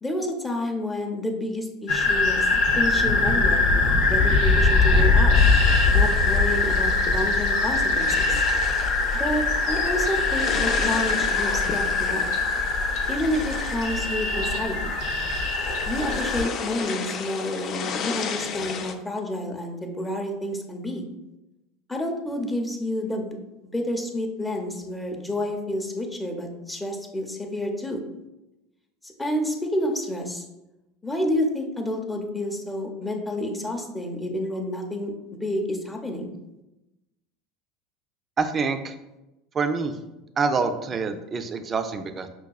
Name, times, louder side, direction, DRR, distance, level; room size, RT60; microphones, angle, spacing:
voice 1, 0.0-2.5 2.8-5.4 5.9-8.4 9.1-12.3 13.1-14.9 15.9-21.0 21.9-23.4 23.6-28.0 29.0-30.4 31.0-35.1 35.4-36.3, left 1 dB, 10° left, 2 dB, 0.6 m, -29 dB
sound 1, 1.9-16.4, left 3 dB, 70° left, 0.7 m, -22 dB
sound 2, 5.3-18.9, left 6 dB, 45° left, 0.3 m, -35 dB
voice 2, 38.4-39.0 39.5-39.9 40.4-42.3, right 4 dB, 30° right, 7 dB, 0.4 m, -26 dB
5.8 x 2.3 x 2.3 m, 0.98 s
hypercardioid pair, 85°, 0 cm